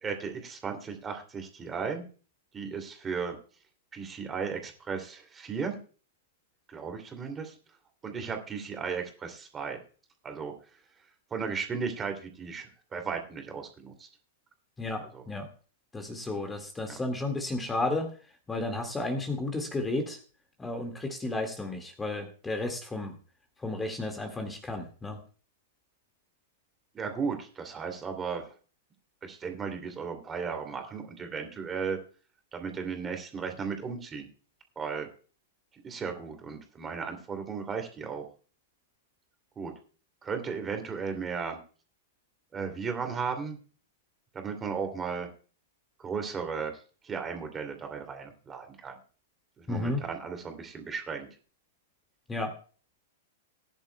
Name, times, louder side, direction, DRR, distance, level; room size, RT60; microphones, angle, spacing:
voice 1, 0.0-2.0 2.5-3.4 3.9-5.8 6.7-7.5 8.0-9.8 10.2-10.5 11.3-14.1 15.1-15.2 26.9-28.5 29.2-32.0 32.5-34.3 34.8-35.1 35.8-38.2 39.6-39.7 40.2-41.6 42.5-43.6 44.3-45.3 46.0-46.7 47.0-48.9 49.6-51.3, right 5 dB, 20° right, 5 dB, 2.7 m, -35 dB
voice 2, 14.8-15.5 15.9-18.1 18.5-20.2 20.6-23.1 23.6-25.2 49.7-50.0 52.3-52.5, left 2 dB, 10° left, 5 dB, 2.0 m, -33 dB
19.5 x 10.5 x 2.3 m, 0.39 s
figure-of-eight pair, 100°, 0 cm